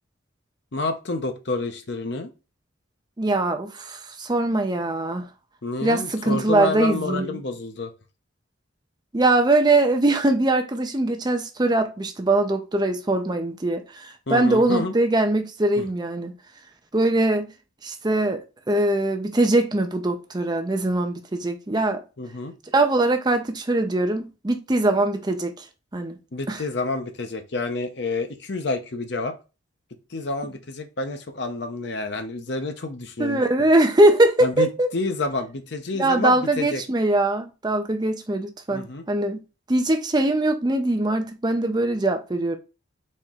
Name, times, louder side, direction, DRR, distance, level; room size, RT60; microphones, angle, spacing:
voice 1, 0.7-2.3 5.6-7.9 14.3-14.9 15.8-15.9 22.2-22.5 26.3-29.3 30.1-33.4 34.4-36.8 38.7-39.0, left 3 dB, 55° left, 0.7 m, -29 dB
voice 2, 3.2-5.3 5.8-7.4 9.1-16.3 16.9-17.5 17.8-22.0 22.7-25.6 25.9-26.2 26.5-26.6 33.2-34.9 35.9-39.4 39.7-42.6, right 2 dB, 20° right, 0.5 m, -22 dB
4.2 x 3.1 x 3.6 m
head